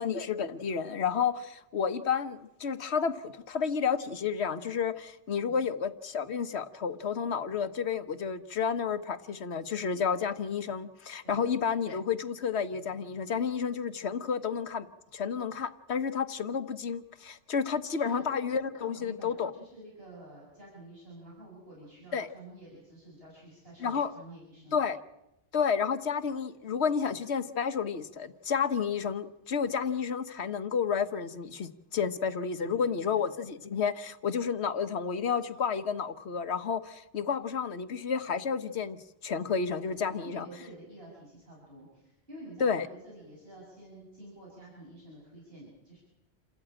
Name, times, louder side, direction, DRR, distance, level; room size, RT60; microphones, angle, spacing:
voice 1, 0.0-14.9 15.1-19.5 22.1-22.3 23.8-24.1 24.7-25.0 25.5-40.5 42.6-42.8, left 6 dB, 80° left, 11 dB, 1.3 m, -31 dB
voice 2, 17.9-18.2 18.8-24.8 32.6-33.1 39.8-46.0, right 1 dB, 65° right, -4 dB, 7.5 m, -49 dB
28.5 x 14.0 x 8.8 m, 0.91 s
omnidirectional pair, 1.1 m